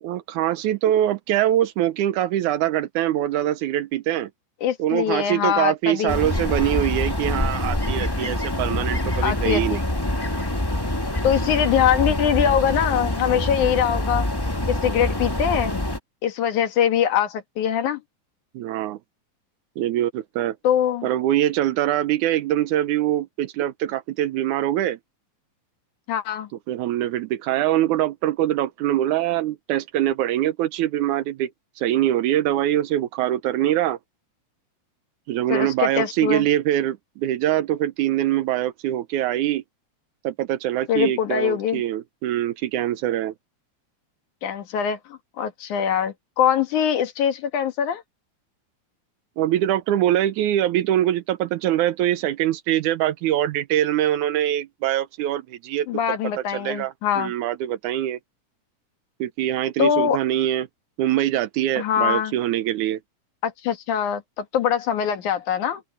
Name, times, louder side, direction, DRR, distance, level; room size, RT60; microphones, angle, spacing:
voice 1, 0.0-4.3 4.8-9.8 18.5-19.0 19.8-20.6 21.0-25.0 26.7-31.5 31.8-34.0 35.3-39.6 40.2-43.3 49.4-55.9 56.5-58.2 59.2-60.7 61.0-63.0, right 12 dB, 85° right, 2.2 m, -23 dB
voice 2, 4.6-6.2 9.2-9.8 11.2-14.3 14.7-15.8 16.2-18.0 20.6-21.1 26.1-26.5 35.5-36.5 40.9-41.8 44.4-48.0 55.9-57.3 59.8-60.2 61.8-62.3 63.4-65.8, left 9 dB, 75° left, 3.1 m, -23 dB
sound 1, 6.1-16.0, left 1 dB, 20° left, 0.6 m, -25 dB
open air
omnidirectional pair, 3.5 m